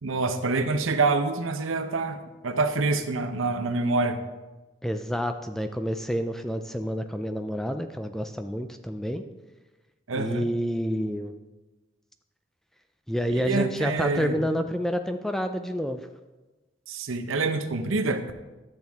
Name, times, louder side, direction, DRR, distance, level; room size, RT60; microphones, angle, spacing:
voice 1, 0.0-2.2 2.4-4.2 10.1-10.5 13.3-14.6 16.9-18.3, right 3 dB, 85° right, 8 dB, 0.8 m, -26 dB
voice 2, 4.8-9.2 10.1-11.3 13.1-16.1, equal, ahead, 7 dB, 0.3 m, -29 dB
11.5 x 7.7 x 3.6 m, 1.1 s
head